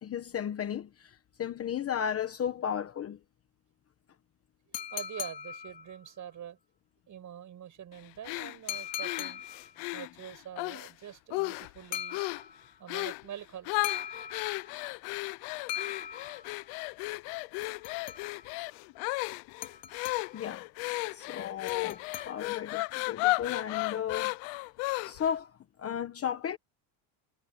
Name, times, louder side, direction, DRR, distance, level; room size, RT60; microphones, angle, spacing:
voice 1, 0.0-3.2 20.3-20.6 21.1-24.3 25.0-25.5 25.8-26.6, left 9 dB, 30° left, 1.1 m, -34 dB
sound 1, 4.7-6.2 8.7-9.8 11.9-12.8 13.8-14.9 15.7-16.7 17.6-18.6 19.6-20.5 21.7-22.8, left 10 dB, 55° left, 3.4 m, -40 dB
voice 2, 4.7-6.6 7.1-9.5 9.9-12.3 12.8-13.7, right 10 dB, 35° right, 6.5 m, -45 dB
sound 2, 8.2-10.9 11.3-11.8 12.1-12.5 12.9-13.3 13.7-25.3, left 23 dB, 80° left, 0.9 m, -34 dB
cardioid pair, 160°, 49 cm